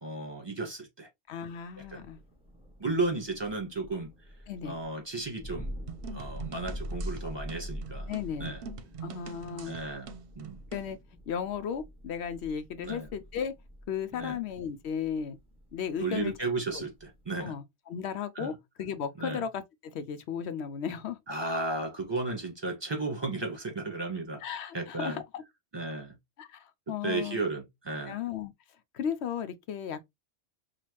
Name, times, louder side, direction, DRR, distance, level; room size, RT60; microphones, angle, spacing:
voice 1, 0.0-1.1 1.9-2.0 2.8-4.1 4.6-5.7 6.1-8.1 8.4-8.6 9.6-10.1 10.3-10.6 12.8-13.1 14.1-14.4 16.0-17.5 18.3-18.5 19.2-19.4 21.3-24.4 24.7-25.2 25.7-26.1 27.0-28.2, right 3 dB, 25° right, 1.5 m, -34 dB
voice 2, 1.3-2.2 4.5-4.8 8.1-8.5 9.0-9.7 10.7-11.0 11.3-13.5 13.9-15.4 15.7-16.3 16.7-16.9 17.4-21.2 24.4-25.4 26.4-27.4 28.1-28.5 28.9-30.1, left 7 dB, 75° left, 0.8 m, -35 dB
Thunder, 1.7-17.5, equal, 5° right, 1.4 m, -44 dB
sound 1, 5.9-10.9, right 6 dB, 60° right, 0.8 m, -44 dB
5.7 x 2.4 x 2.9 m
omnidirectional pair, 1.2 m